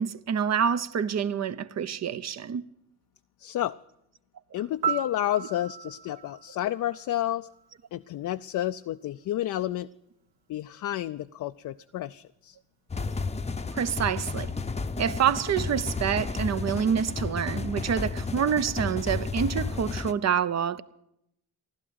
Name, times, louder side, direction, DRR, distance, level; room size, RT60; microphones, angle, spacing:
voice 1, 0.0-2.7 13.7-14.5 15.0-20.8, right 8 dB, 45° right, 0.8 m, -27 dB
voice 2, 3.4-3.8 4.5-7.5 7.9-9.9 10.5-12.6, left 13 dB, 55° left, 0.5 m, -30 dB
Piano, 4.8-7.8 15.9-16.1, right 7 dB, 85° right, 1.1 m, -35 dB
sound 1, 12.9-20.1, left 4 dB, 20° left, 0.8 m, -32 dB
15.5 x 12.0 x 7.9 m
supercardioid pair, 65°, 37 cm